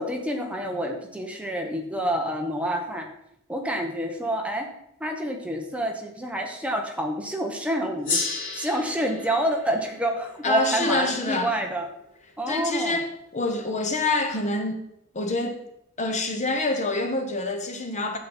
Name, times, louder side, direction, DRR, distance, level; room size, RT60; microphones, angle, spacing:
voice 1, 0.0-3.1 3.5-4.6 5.0-8.2 8.5-11.9 12.4-13.0, right 1 dB, 5° right, 1.1 m, -28 dB
Gong, 8.0-12.8, left 3 dB, 70° left, 4.2 m, -34 dB
voice 2, 10.4-11.6 12.5-14.8 15.1-15.6 16.0-18.2, left 2 dB, 35° left, 1.1 m, -26 dB
8.6 x 7.6 x 4.4 m
head